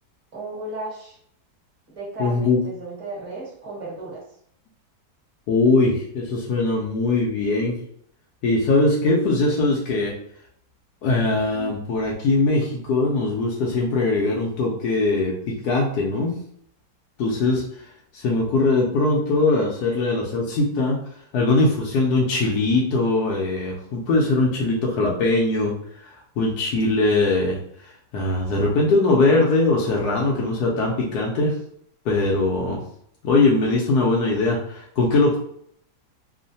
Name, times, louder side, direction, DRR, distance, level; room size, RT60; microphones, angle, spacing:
voice 1, 0.3-1.2 1.9-4.2, right 2 dB, 25° right, -6 dB, 1.0 m, -34 dB
voice 2, 2.2-2.6 5.5-7.8 8.4-10.1 11.0-16.4 17.2-21.0 21.3-25.8 26.0-31.5 32.0-32.8 33.2-35.4, left 2 dB, 75° left, -2 dB, 1.1 m, -21 dB
3.0 x 2.1 x 2.6 m, 0.66 s
omnidirectional pair, 1.9 m